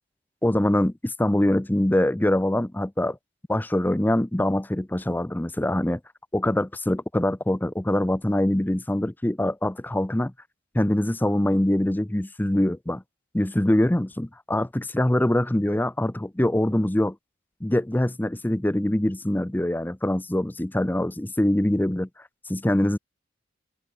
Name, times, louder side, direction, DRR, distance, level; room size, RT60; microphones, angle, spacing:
voice 1, 0.4-3.2 3.5-6.0 6.3-10.3 10.7-13.0 13.3-17.2 17.6-22.1 22.5-23.0, left 1 dB, 10° left, 0.5 m, -24 dB
open air
head